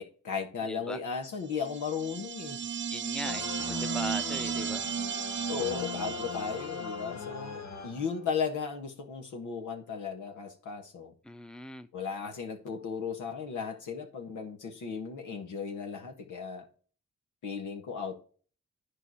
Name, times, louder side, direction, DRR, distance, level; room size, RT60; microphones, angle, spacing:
voice 1, 0.0-2.6 5.5-11.1 11.9-16.7 17.4-18.2, left 6 dB, 90° left, 1.5 m, -36 dB
voice 2, 0.7-1.0 2.9-4.8 11.2-11.9, left 1 dB, 5° left, 0.7 m, -40 dB
sound 1, 1.5-6.9, right 8 dB, 40° right, 0.5 m, -35 dB
sound 2, 3.2-8.5, left 6 dB, 70° left, 1.1 m, -40 dB
10.0 x 4.8 x 4.8 m
supercardioid pair, 45°, 29 cm